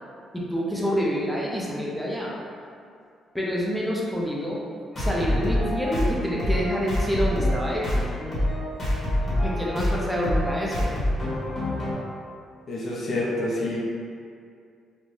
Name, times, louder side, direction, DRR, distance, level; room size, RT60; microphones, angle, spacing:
voice 1, 0.3-2.4 3.3-4.6 5.0-8.1 9.4-10.9, equal, ahead, -5 dB, 0.5 m, -27 dB
sound 1, 4.9-11.9, left 1 dB, 35° left, 1.0 m, -26 dB
voice 2, 12.7-13.8, left 1 dB, 55° left, -4 dB, 0.5 m, -27 dB
2.5 x 2.1 x 3.1 m, 2.3 s
cardioid pair, 90°, 0 cm